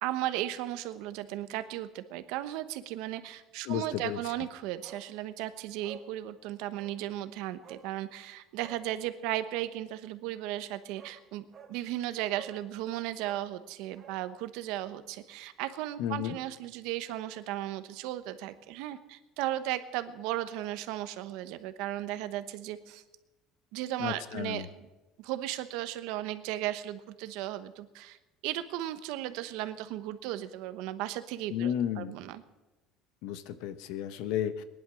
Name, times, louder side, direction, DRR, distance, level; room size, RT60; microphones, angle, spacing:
voice 1, 0.0-23.0 23.7-24.9 25.2-28.2 28.4-32.4, right 14 dB, 75° right, 12 dB, 1.0 m, -36 dB
voice 2, 3.7-4.2 16.0-16.3 24.0-24.7 31.5-32.2 33.2-34.6, left 10 dB, 75° left, 13 dB, 0.9 m, -33 dB
Bark, 4.8-5.1 5.4-5.5 5.8-6.1 6.7-7.0 7.6-7.9 8.5-8.9 10.5-10.6 11.0-11.2 11.5-11.8 12.3-12.6 13.2-14.2 14.5-14.6, right 7 dB, 35° right, 1.7 m, -50 dB
19.0 x 11.0 x 6.3 m, 1.1 s
cardioid pair, 155°, 0 cm